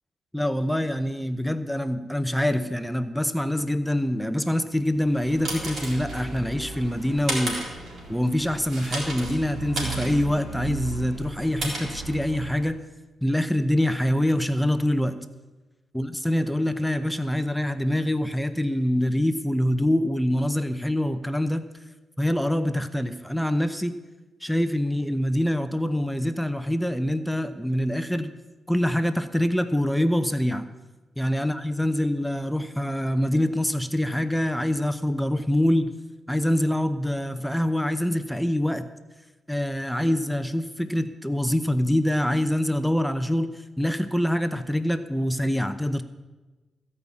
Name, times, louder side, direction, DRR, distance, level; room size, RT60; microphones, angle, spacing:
voice 1, 0.3-7.6 8.1-12.8 13.2-15.3 15.9-21.6 22.2-24.0 24.4-28.3 28.7-30.6 31.2-35.9 36.3-38.9 39.5-46.0, left 1 dB, ahead, 10 dB, 0.7 m, -25 dB
sound 1, 4.9-12.7, right 3 dB, 65° right, 3.8 m, -34 dB
15.0 x 5.5 x 8.3 m, 1.2 s
cardioid pair, 65°, 0 cm